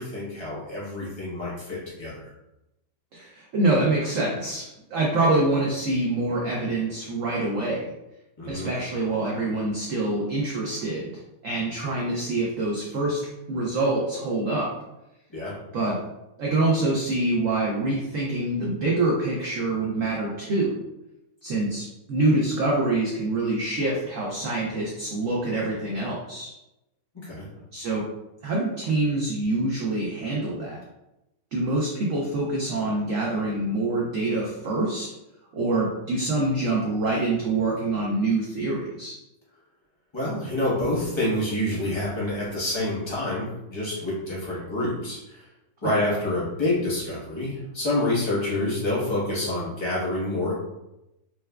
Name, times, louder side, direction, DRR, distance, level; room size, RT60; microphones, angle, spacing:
voice 1, 0.0-2.3 8.4-8.7 15.3-15.5 27.1-27.4 40.1-45.4 45.8-50.6, left 1 dB, 25° left, -7 dB, 0.6 m, -27 dB
voice 2, 3.1-7.9 8.5-13.2 13.5-14.7 15.7-16.0 16.4-20.8 21.4-26.5 27.7-28.1 28.4-30.8 31.5-35.1 35.5-39.1 45.8-45.9, right 2 dB, 80° right, -3 dB, 0.7 m, -25 dB
4.4 x 2.2 x 2.2 m, 0.92 s
omnidirectional pair, 2.0 m